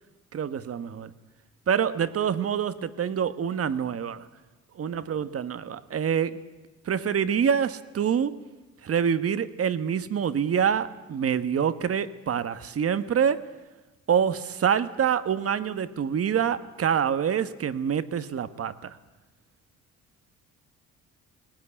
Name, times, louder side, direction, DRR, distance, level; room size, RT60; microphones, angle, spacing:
voice 1, 0.3-1.1 1.7-4.2 4.8-6.4 6.8-8.4 8.8-13.5 14.1-19.0, right 8 dB, 50° right, 1.3 m, -26 dB
21.0 x 19.0 x 9.9 m
cardioid pair, 90°, 30 cm